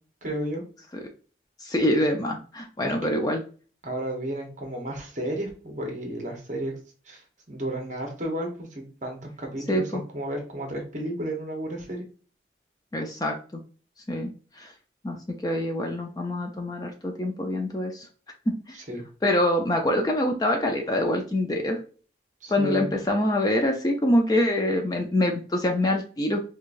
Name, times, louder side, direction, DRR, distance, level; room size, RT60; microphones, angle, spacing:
voice 1, 0.2-0.6 2.8-3.1 3.8-6.7 7.1-7.2 7.5-12.0 18.9-19.0 22.4-23.0, right 1 dB, 40° right, 2 dB, 0.9 m, -32 dB
voice 2, 1.6-3.4 9.7-10.0 12.9-13.6 14.1-14.3 14.6-14.7 15.0-15.2 15.4-18.1 18.7-18.8 19.2-21.8 22.5-26.4, left 1 dB, 20° left, 3 dB, 0.4 m, -25 dB
4.6 x 2.3 x 2.5 m, 0.39 s
head